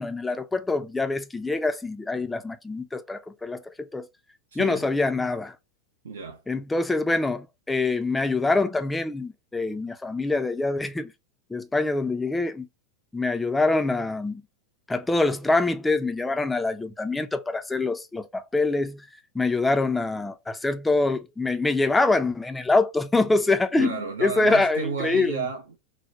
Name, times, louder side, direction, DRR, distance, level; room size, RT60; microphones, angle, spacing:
voice 1, 0.0-4.1 4.6-5.5 6.5-11.1 11.5-12.7 13.1-14.4 14.9-19.1 19.3-25.5, left 3 dB, 10° left, 0.4 m, -25 dB
voice 2, 4.5-4.8 6.0-6.4 23.8-25.8, right 5 dB, 65° right, 0.4 m, -32 dB
3.3 x 2.1 x 2.8 m
figure-of-eight pair, 90°, 0 cm